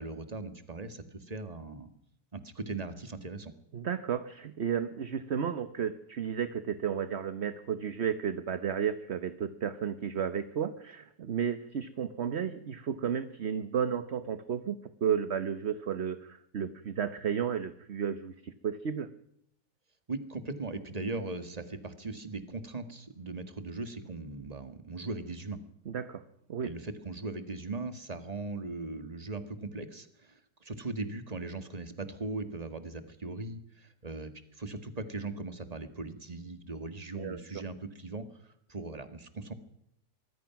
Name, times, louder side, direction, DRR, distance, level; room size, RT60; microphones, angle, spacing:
voice 1, 0.0-1.9 2.3-3.5 20.1-25.6 26.6-39.5, right 3 dB, 20° right, 10 dB, 1.8 m, -39 dB
voice 2, 3.7-19.1 25.9-26.2 26.5-26.7 37.1-37.4, right 8 dB, 45° right, 11 dB, 1.1 m, -33 dB
24.5 x 20.0 x 6.0 m, 0.73 s
omnidirectional pair, 1.8 m